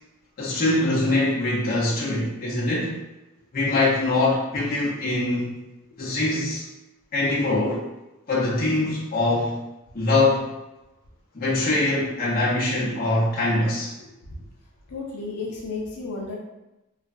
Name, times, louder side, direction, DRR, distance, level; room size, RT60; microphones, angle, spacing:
voice 1, 0.4-3.0 3.5-5.5 6.0-6.6 7.1-7.8 8.3-9.6 9.9-10.5 11.3-13.9, left 2 dB, 40° left, -6 dB, 0.7 m, -23 dB
voice 2, 14.0-14.4 14.9-16.4, left 3 dB, 85° left, -3 dB, 0.6 m, -33 dB
3.2 x 2.2 x 2.5 m, 0.97 s
head